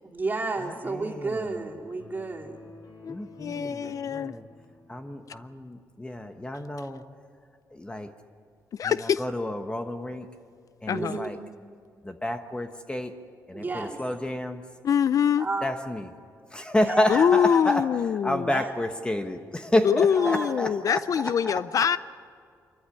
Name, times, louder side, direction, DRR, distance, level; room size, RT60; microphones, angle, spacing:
voice 1, 0.0-2.6 3.5-3.9 10.9-11.3 13.5-14.0 15.4-15.7 16.8-17.8 18.5-18.7 20.2-20.8, right 3 dB, 30° right, 1 dB, 3.1 m, -32 dB
voice 2, 0.9-1.5 3.1-4.4 4.9-7.0 7.7-8.1 8.8-10.3 10.8-11.4 12.0-13.1 13.5-14.6 15.6-16.1 16.5-17.9 18.2-21.8, left 1 dB, 15° left, 6 dB, 1.2 m, -30 dB
sound 1, 2.0-5.5, left 2 dB, 90° left, 4.9 m, -51 dB
voice 3, 3.0-4.3 8.7-9.2 10.9-11.2 14.8-15.5 17.1-18.5 19.8-22.0, left 8 dB, 60° left, 16 dB, 0.5 m, -24 dB
25.5 x 14.0 x 9.9 m, 2.2 s
cardioid pair, 90°, 7 cm